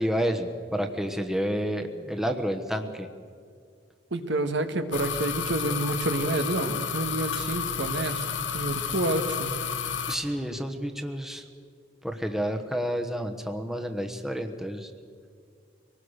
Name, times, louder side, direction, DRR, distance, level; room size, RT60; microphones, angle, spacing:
voice 1, 0.0-3.1 10.1-11.5 12.0-14.9, equal, ahead, 5 dB, 1.2 m, -30 dB
voice 2, 4.1-8.2 8.5-9.6, right 2 dB, 70° right, 8 dB, 1.6 m, -28 dB
sound 1, 4.9-10.2, left 7 dB, 75° left, 1.4 m, -31 dB
24.0 x 19.0 x 6.5 m, 2.2 s
head